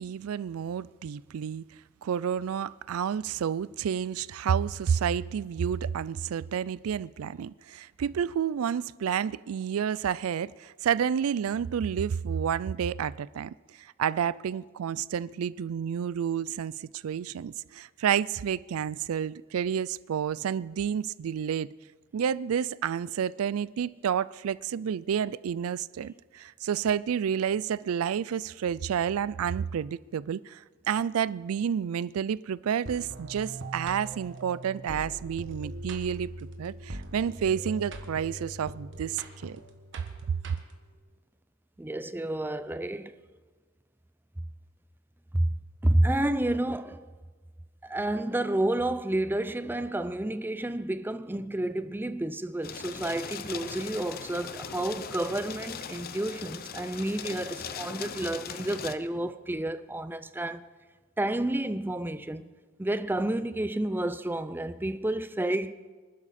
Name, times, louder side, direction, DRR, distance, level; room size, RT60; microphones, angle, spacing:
voice 1, 0.0-1.6 2.0-13.5 13.8-21.7 22.1-39.6, right 8 dB, 90° right, 0.4 m, -30 dB
sound 1, 32.9-41.0, right 2 dB, 60° right, 1.5 m, -41 dB
voice 2, 41.8-43.2 45.3-45.5 45.8-47.1 47.8-60.7 61.2-62.5 62.8-65.7, right 1 dB, 10° right, 0.5 m, -30 dB
sound 2, 52.6-58.9, left 7 dB, 45° left, 0.7 m, -39 dB
25.0 x 12.0 x 4.2 m
head